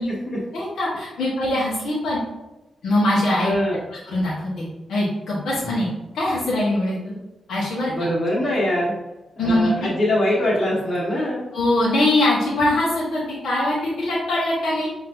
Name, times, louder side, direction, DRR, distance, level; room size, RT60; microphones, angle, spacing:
voice 1, 0.5-2.2 2.8-3.5 4.1-4.6 4.9-5.9 6.1-7.1 7.5-7.9 9.4-9.7 11.5-14.9, left 1 dB, 85° left, -7 dB, 1.4 m, -22 dB
voice 2, 3.4-3.8 7.9-8.9 9.4-11.4, left 1 dB, 40° left, -8 dB, 1.5 m, -22 dB
5.9 x 3.2 x 2.7 m, 1.0 s
wide cardioid pair, 125°, 0 cm